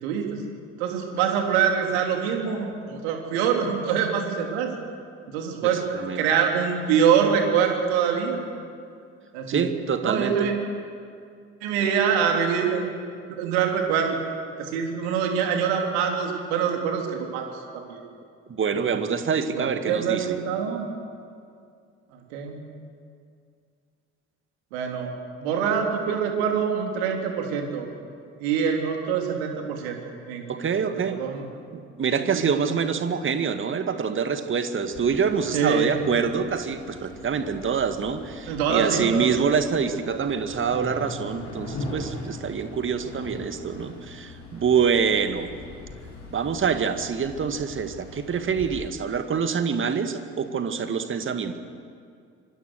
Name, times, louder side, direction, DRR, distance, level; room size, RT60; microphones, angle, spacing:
voice 1, 0.0-0.4 0.8-4.7 5.3-8.4 9.3-9.7 10.0-10.5 11.6-13.0 13.3-14.2 14.6-17.5 17.7-18.0 19.6-20.9 22.3-22.6 24.7-25.1 25.4-27.9 28.4-30.0 30.3-30.5 31.2-31.4 32.3-32.4 35.5-35.9 38.5-39.3, right 7 dB, 65° right, 2 dB, 3.5 m, -24 dB
voice 2, 5.6-6.2 9.5-10.5 18.5-20.4 30.5-31.2 31.7-45.5 46.3-51.6, right 6 dB, 35° right, 8 dB, 2.1 m, -26 dB
sound 1, 34.9-48.7, left 2 dB, 50° left, 7.4 m, -41 dB
25.5 x 24.5 x 6.6 m, 2.3 s
figure-of-eight pair, 50°, 34 cm